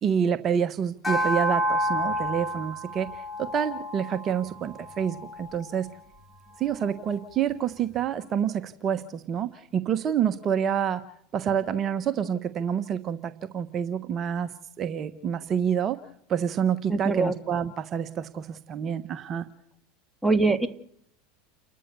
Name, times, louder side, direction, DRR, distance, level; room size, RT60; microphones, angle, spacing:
voice 1, 0.0-5.9 6.6-11.0 11.3-14.5 14.8-16.0 16.3-19.5, right 8 dB, 35° right, 9 dB, 1.2 m, -28 dB
sound 1, 1.0-5.6, equal, 10° left, 2.7 m, -30 dB
voice 2, 16.9-17.3 20.2-20.7, right 3 dB, 5° right, 6 dB, 2.0 m, -22 dB
29.5 x 13.0 x 6.9 m, 0.70 s
hypercardioid pair, 100°, 0 cm